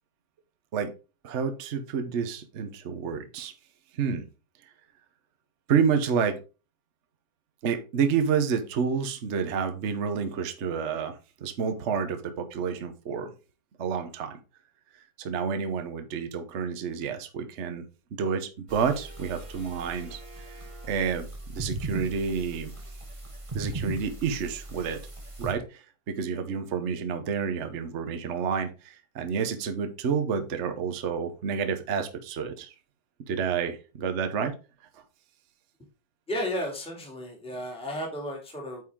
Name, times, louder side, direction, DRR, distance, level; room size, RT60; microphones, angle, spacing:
voice 1, 1.2-3.5 3.9-4.2 5.7-6.4 7.6-11.1 11.4-13.3 13.8-14.4 15.2-17.8 18.2-20.2 20.5-20.6 20.8-21.3 21.5-22.7 23.5-25.0 25.4-32.7 33.3-34.5, right 6 dB, 45° right, 8 dB, 1.0 m, -29 dB
sound 1, 18.7-25.5, right 2 dB, 20° right, 1.2 m, -38 dB
voice 2, 36.3-38.8, equal, 5° left, 0 dB, 2.2 m, -33 dB
9.2 x 4.9 x 3.7 m, 0.31 s
omnidirectional pair, 2.2 m